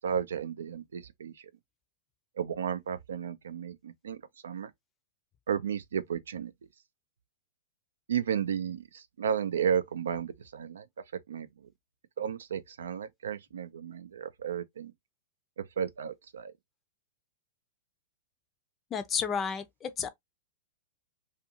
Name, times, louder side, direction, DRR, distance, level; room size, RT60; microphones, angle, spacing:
voice 1, 0.0-1.5 2.4-4.7 5.5-6.5 8.1-10.9 11.3-11.5 12.2-14.9 15.6-16.5, right 8 dB, 85° right, 0.4 m, -33 dB
voice 2, 18.9-20.1, left 6 dB, 25° left, 0.5 m, -32 dB
2.5 x 2.4 x 2.7 m
hypercardioid pair, 120°, 0 cm